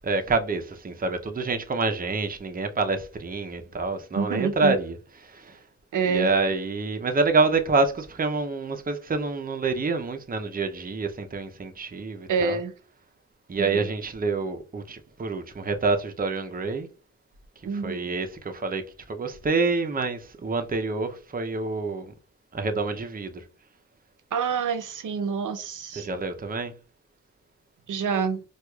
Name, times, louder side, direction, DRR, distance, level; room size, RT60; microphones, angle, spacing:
voice 1, 0.0-5.0 5.2-5.6 6.0-12.6 13.5-16.9 17.7-22.1 22.5-23.4 26.0-26.7, right 3 dB, 30° right, 0.5 m, -27 dB
voice 2, 4.2-4.8 5.9-6.3 12.3-12.7 13.6-13.9 17.6-18.1 24.3-26.1 27.9-28.4, right 6 dB, 85° right, 0.6 m, -27 dB
4.5 x 2.3 x 2.2 m
cardioid pair, 65°, 30 cm